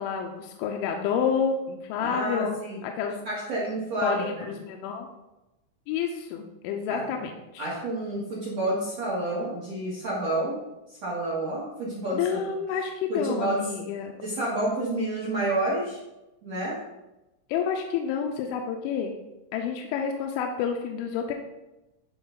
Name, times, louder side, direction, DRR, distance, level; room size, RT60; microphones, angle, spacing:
voice 1, 0.0-3.2 4.0-5.1 5.9-7.7 12.1-14.1 17.5-19.1 19.5-21.3, left 7 dB, 85° left, 3 dB, 3.0 m, -29 dB
voice 2, 2.0-2.8 3.2-4.5 6.9-7.0 7.6-10.6 11.0-12.5 13.1-13.6 14.2-16.0 16.4-16.8, right 1 dB, 60° right, -6 dB, 1.6 m, -29 dB
11.0 x 3.9 x 3.9 m, 0.96 s
omnidirectional pair, 5.5 m